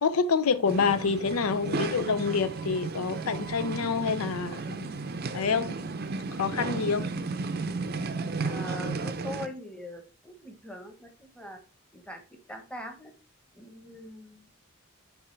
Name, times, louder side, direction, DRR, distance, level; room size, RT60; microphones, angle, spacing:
voice 1, 0.0-4.9 5.3-5.7 6.3-7.1, left 5 dB, 90° left, 0.5 m, -27 dB
sound 1, 0.6-9.5, right 3 dB, 45° right, 0.5 m, -34 dB
voice 2, 8.4-11.6 11.9-12.2 12.5-13.1 13.5-14.5, left 1 dB, 5° left, 1.0 m, -42 dB
9.6 x 3.5 x 3.3 m
head